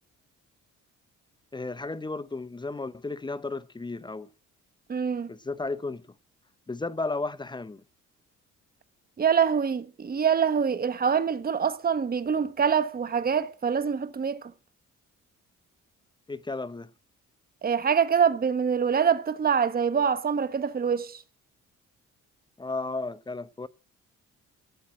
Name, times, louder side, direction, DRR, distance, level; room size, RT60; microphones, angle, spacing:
voice 1, 1.5-4.3 5.3-6.0 6.7-7.8 16.3-16.9 22.6-23.7, left 3 dB, 15° left, 0.6 m, -33 dB
voice 2, 4.9-5.3 9.2-14.5 17.6-21.2, right 7 dB, 30° right, 1.0 m, -25 dB
13.0 x 7.5 x 8.7 m
cardioid pair, 90°, 30 cm